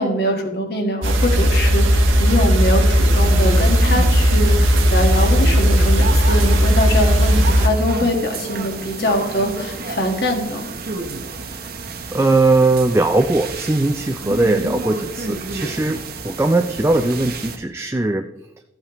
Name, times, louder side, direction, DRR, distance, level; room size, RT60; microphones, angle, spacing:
voice 1, 0.0-10.7, left 1 dB, 55° left, 3 dB, 1.7 m, -23 dB
sound 1, 1.0-7.7, equal, 90° right, 1.3 m, -15 dB
sound 2, 3.1-17.6, right 3 dB, 50° right, 1.0 m, -30 dB
voice 2, 12.1-18.2, right 2 dB, 15° right, 6 dB, 0.3 m, -19 dB
14.5 x 8.6 x 3.0 m, 0.89 s
head